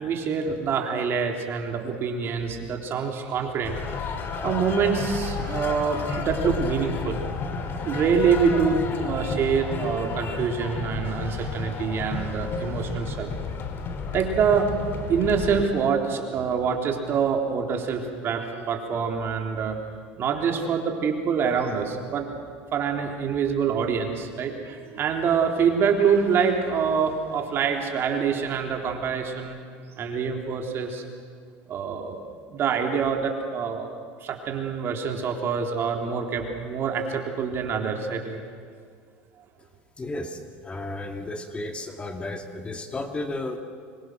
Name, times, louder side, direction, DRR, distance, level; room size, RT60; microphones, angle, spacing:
voice 1, 0.0-4.1 4.4-7.2 7.8-13.4 14.1-14.7 15.1-19.8 20.2-22.3 22.7-29.6 30.0-31.0 31.7-32.2 32.5-33.9 34.2-38.4, right 6 dB, 45° right, 3 dB, 3.4 m, -25 dB
sound 1, 3.6-15.6, left 5 dB, 40° left, 2.7 m, -32 dB
voice 2, 40.0-43.6, left 2 dB, 20° left, 5 dB, 1.9 m, -33 dB
25.5 x 22.5 x 6.3 m, 2.1 s
supercardioid pair, 110°, 6 cm